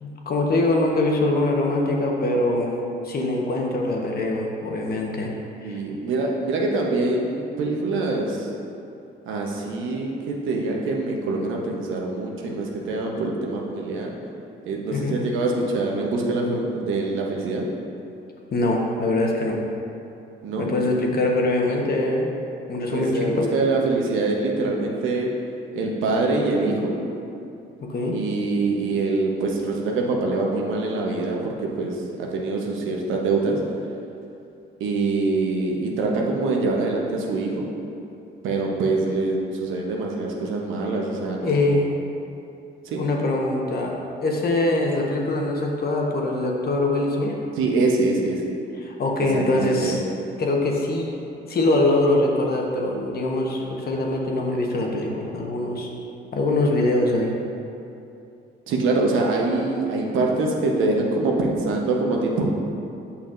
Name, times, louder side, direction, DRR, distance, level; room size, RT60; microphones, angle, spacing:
voice 1, 0.0-2.7 3.0-5.8 14.9-15.2 18.5-19.6 20.6-22.3 22.7-23.4 27.8-28.2 41.4-42.0 43.0-47.4 48.8-50.0 50.4-51.2 51.5-55.9 56.3-57.3, left 2 dB, 50° left, 0 dB, 1.0 m, -23 dB
voice 2, 5.6-8.5 9.3-14.1 14.7-17.7 20.4-20.7 21.7-21.9 22.9-25.3 25.8-26.9 28.1-31.5 31.7-33.6 34.8-37.7 38.4-41.8 42.8-43.0 47.6-48.4 49.3-49.9 58.7-62.4, right 3 dB, 90° right, -1 dB, 0.9 m, -24 dB
8.5 x 5.7 x 2.5 m, 2.7 s
cardioid pair, 90°, 20 cm